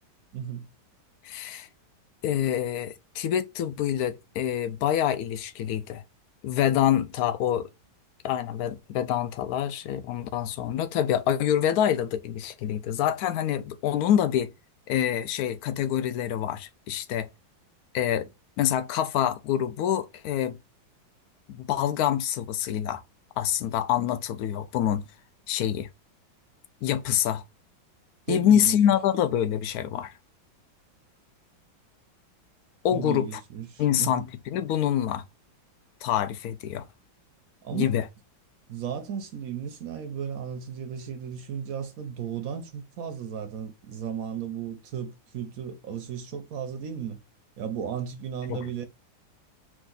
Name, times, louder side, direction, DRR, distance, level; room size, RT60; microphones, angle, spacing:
voice 1, 0.3-0.7 28.3-28.8 32.9-34.3 37.6-38.0 38.7-47.2 47.6-48.8, right 8 dB, 65° right, 0.9 m, -35 dB
voice 2, 1.2-1.7 2.2-6.0 6.4-7.7 8.2-14.5 14.9-17.3 17.9-18.3 18.6-20.6 21.5-23.0 23.4-25.0 25.5-25.9 26.8-27.4 28.3-30.1 32.8-33.4 33.8-35.2 36.0-36.8 37.7-38.0 48.5-48.6, left 10 dB, 75° left, 0.9 m, -26 dB
4.9 x 2.6 x 3.8 m
omnidirectional pair, 2.1 m